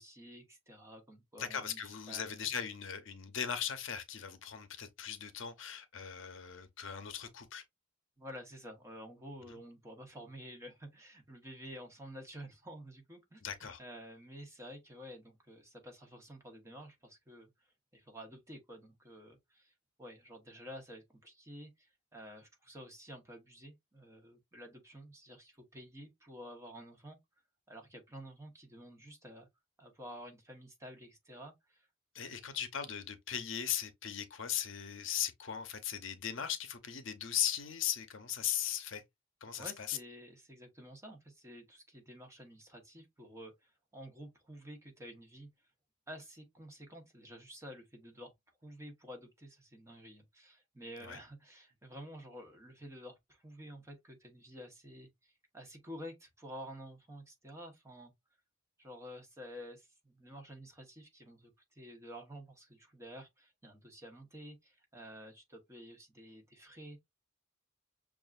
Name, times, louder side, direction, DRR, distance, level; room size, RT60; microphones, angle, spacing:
voice 1, 0.0-2.3 8.2-13.4 13.8-17.7 17.9-19.7 20.0-27.2 27.7-29.5 29.8-31.9 32.2-32.5 39.6-45.5 46.1-48.3 48.6-58.1 58.8-67.0, equal, 15° right, 0.9 m, -50 dB
voice 2, 1.4-7.6 9.5-9.6 13.4-13.8 32.1-39.0 39.4-40.0 51.0-51.2, left 9 dB, 65° left, 0.7 m, -38 dB
6.2 x 2.4 x 2.4 m
head